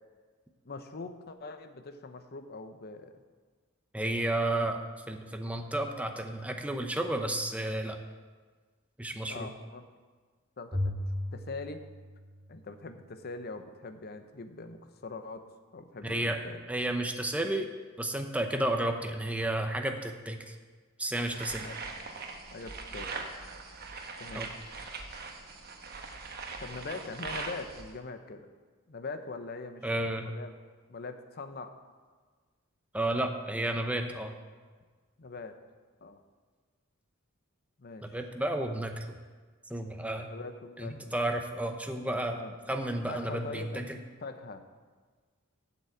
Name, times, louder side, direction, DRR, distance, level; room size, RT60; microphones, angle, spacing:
voice 1, 0.6-3.1 9.3-9.9 10.6-11.8 12.5-16.6 21.6-21.8 22.5-23.1 24.2-24.5 26.6-28.5 28.9-29.9 30.2-30.5 30.9-31.7 35.2-35.5 36.0-36.2 37.8-38.2 40.3-41.2 42.3-42.5 43.1-43.9 44.2-44.6, left 3 dB, 50° left, 8 dB, 0.8 m, -42 dB
voice 2, 3.9-8.0 9.0-9.5 16.0-16.4 16.7-17.7 18.0-20.5 21.0-21.7 24.3-24.5 29.8-30.3 32.9-34.3 38.0-39.2 39.7-40.3 40.8-42.4 42.7-44.0, right 1 dB, 5° right, 5 dB, 0.8 m, -32 dB
Bowed string instrument, 10.7-13.1, left 1 dB, 30° right, 2.1 m, -36 dB
sound 1, 21.2-27.9, right 4 dB, 50° right, 1.1 m, -41 dB
8.4 x 7.1 x 7.8 m, 1.5 s
head